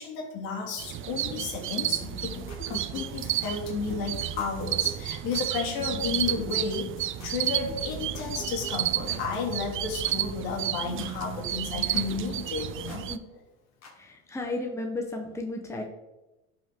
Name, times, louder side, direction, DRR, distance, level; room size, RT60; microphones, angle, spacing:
voice 1, 0.0-2.3 2.7-6.9 7.2-13.1, left 5 dB, 60° left, 0 dB, 3.0 m, -32 dB
sound 1, 0.8-13.2, right 12 dB, 30° right, 0.5 m, -32 dB
sound 2, 2.0-11.2 11.4-13.0 13.8-13.9, left 1 dB, 40° left, 2.5 m, -43 dB
voice 2, 14.0-15.8, left 2 dB, 5° left, 2 dB, 1.3 m, -33 dB
11.5 x 5.7 x 3.9 m, 1.0 s
supercardioid pair, 100°, 41 cm